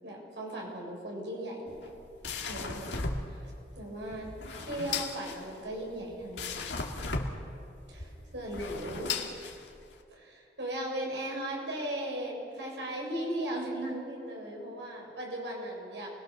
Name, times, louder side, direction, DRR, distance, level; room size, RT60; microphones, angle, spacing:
voice 1, 0.0-1.8 2.4-3.0 3.3-4.3 4.6-6.6 7.9-9.1 10.1-16.1, right 1 dB, 85° right, -1 dB, 7.2 m, -37 dB
sound 1, 1.7-10.0, left 4 dB, 85° left, 2.4 m, -37 dB
29.5 x 21.5 x 6.7 m, 2.5 s
head